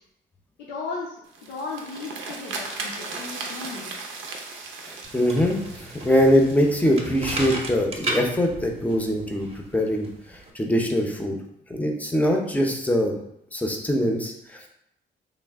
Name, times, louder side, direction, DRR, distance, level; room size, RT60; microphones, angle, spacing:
voice 1, 0.6-4.0, left 4 dB, 80° left, -4 dB, 0.6 m, -36 dB
sound 1, 1.2-7.3, right 3 dB, 85° right, 0.6 m, -37 dB
voice 2, 4.8-10.1 10.5-11.4 11.7-13.1 13.5-14.7, equal, 5° left, 2 dB, 0.5 m, -23 dB
sound 2, 5.0-10.5, right 1 dB, 30° right, 0.7 m, -35 dB
3.1 x 2.1 x 3.4 m, 0.77 s
cardioid pair, 90°, 20 cm